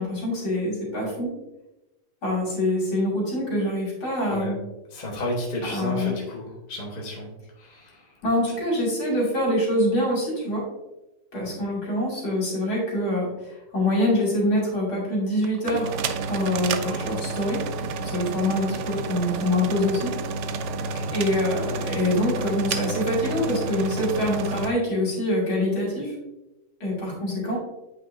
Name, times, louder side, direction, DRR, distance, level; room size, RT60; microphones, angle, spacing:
voice 1, 0.0-1.3 2.2-4.6 5.6-6.2 8.2-10.6 11.3-16.0 16.3-17.6 18.1-20.1 21.1-26.1 26.8-27.6, left 1 dB, 65° left, -4 dB, 3.2 m, -25 dB
voice 2, 4.9-7.3 7.6-7.9 20.8-21.1, left 1 dB, 25° left, -3 dB, 1.3 m, -32 dB
sound 1, 15.4-24.7, right 4 dB, 75° right, 0.6 m, -30 dB
8.4 x 5.7 x 2.7 m, 0.97 s
omnidirectional pair, 1.8 m